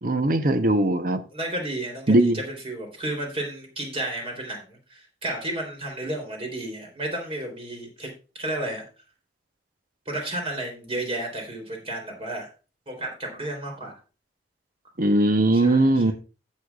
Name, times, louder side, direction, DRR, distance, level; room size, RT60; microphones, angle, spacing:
voice 1, 0.0-1.2 2.1-2.4 15.0-16.1, right 1 dB, 50° right, 0.8 m, -20 dB
voice 2, 1.3-8.1 8.3-8.8 10.0-12.5 12.9-14.0 15.5-16.1, right 1 dB, 35° right, 3.5 m, -32 dB
17.0 x 6.4 x 2.4 m
head